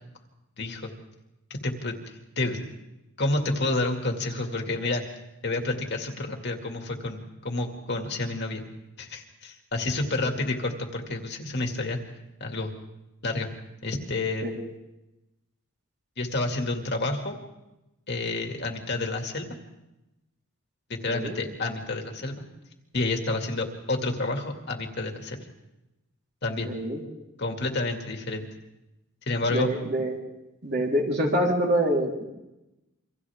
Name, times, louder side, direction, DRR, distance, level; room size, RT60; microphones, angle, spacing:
voice 1, 0.6-0.9 1.5-2.7 3.2-5.0 5.4-8.6 9.0-12.0 12.4-12.7 13.2-13.5 13.8-14.5 16.2-17.4 18.1-19.5 20.9-22.4 22.9-25.5 26.4-26.7 27.4-28.5 29.3-29.7, left 2 dB, 50° left, 3 dB, 2.3 m, -29 dB
voice 2, 26.6-27.0 29.5-30.2 30.6-32.2, right 1 dB, 50° right, -2 dB, 3.9 m, -26 dB
28.5 x 25.0 x 3.6 m, 0.97 s
head